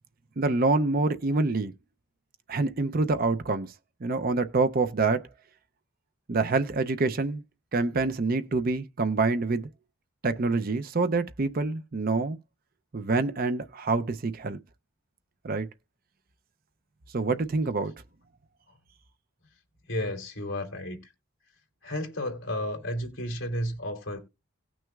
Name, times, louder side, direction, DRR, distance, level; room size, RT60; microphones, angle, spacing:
voice 1, 0.4-1.7 2.5-3.7 4.0-5.2 6.3-7.4 7.7-9.7 10.2-12.4 12.9-14.6 15.4-15.7 17.1-17.9, right 3 dB, 40° right, 0.5 m, -26 dB
voice 2, 19.9-21.0 21.8-24.2, left 1 dB, 60° left, 2.7 m, -32 dB
18.0 x 6.1 x 2.3 m
head